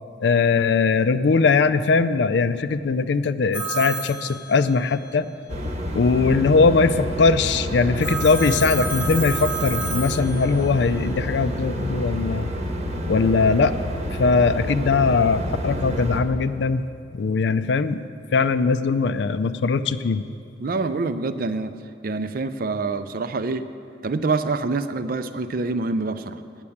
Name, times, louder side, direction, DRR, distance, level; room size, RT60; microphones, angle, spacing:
voice 1, 0.2-5.3 5.9-12.5 13.1-13.8 14.2-16.9 17.1-18.0 18.3-20.3, left 4 dB, 65° left, 13 dB, 0.4 m, -20 dB
Telephone, 3.5-5.1 8.0-10.8, right 3 dB, 10° right, 0.8 m, -30 dB
sound 1, 5.5-16.2, equal, 35° right, 0.9 m, -29 dB
voice 2, 20.6-21.7 22.0-23.6 24.0-26.4, right 3 dB, 50° right, 11 dB, 0.4 m, -26 dB
9.7 x 6.8 x 8.5 m, 2.6 s
head